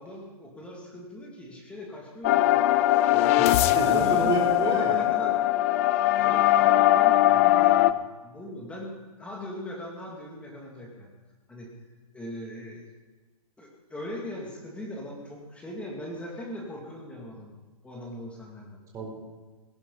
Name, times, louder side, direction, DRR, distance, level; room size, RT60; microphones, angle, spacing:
voice 1, 0.0-3.4 3.8-5.4 6.2-8.9 9.2-11.1 11.5-11.7 12.1-12.9 13.6-18.8, left 1 dB, 5° left, -2 dB, 2.7 m, -40 dB
sound 1, 2.2-7.9, left 14 dB, 20° left, 0.4 m, -21 dB
voice 2, 3.4-4.9 18.9-19.1, right 3 dB, 15° right, -2 dB, 4.1 m, -29 dB
18.0 x 16.5 x 4.2 m, 1.3 s
hypercardioid pair, 145°, 20 cm